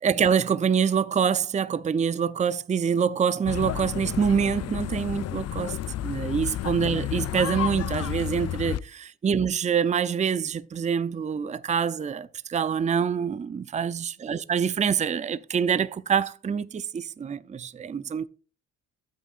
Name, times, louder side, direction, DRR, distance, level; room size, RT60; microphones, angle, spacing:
voice 1, 0.0-18.3, right 7 dB, 25° right, 0.5 m, -26 dB
sound 1, 3.4-8.8, left 12 dB, 55° left, 0.6 m, -31 dB
12.5 x 8.3 x 2.5 m
cardioid pair, 90°, 30 cm